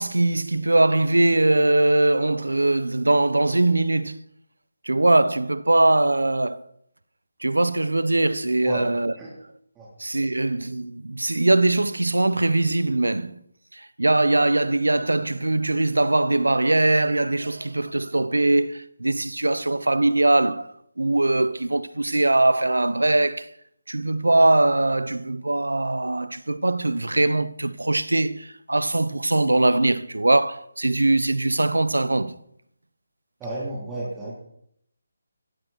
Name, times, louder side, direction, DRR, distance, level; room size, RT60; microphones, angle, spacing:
voice 1, 0.0-4.2 4.8-6.6 7.4-9.1 10.0-13.4 13.7-20.7 21.0-23.5 23.9-32.3, right 2 dB, 85° right, 0.9 m, -21 dB
voice 2, 33.4-34.3, right 1 dB, 10° right, 4.0 m, -31 dB
15.5 x 15.5 x 4.6 m
figure-of-eight pair, 155°, 0 cm